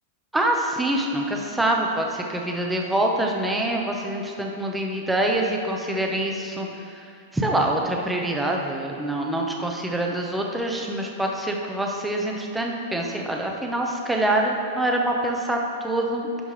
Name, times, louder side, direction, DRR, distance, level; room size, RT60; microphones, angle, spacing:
voice 1, 0.3-6.7 6.9-7.1 7.3-16.3, right 1 dB, 5° right, 0 dB, 0.7 m, -25 dB
11.0 x 5.4 x 3.2 m, 2.5 s
supercardioid pair, 150°, 0 cm